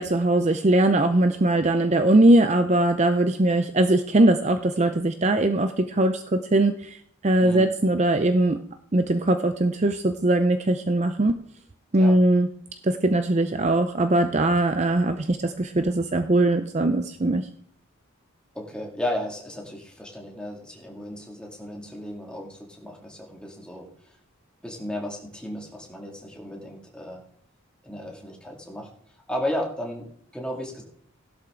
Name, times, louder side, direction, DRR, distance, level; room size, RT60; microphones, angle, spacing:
voice 1, 0.0-7.0 7.2-8.6 8.9-11.4 11.9-12.5 12.8-17.5, right 1 dB, 30° right, 8 dB, 0.5 m, -21 dB
voice 2, 18.5-23.9 24.6-27.2 27.8-28.9 29.3-30.1 30.3-30.8, left 1 dB, 5° left, -1 dB, 2.3 m, -34 dB
16.5 x 11.5 x 3.8 m, 0.66 s
head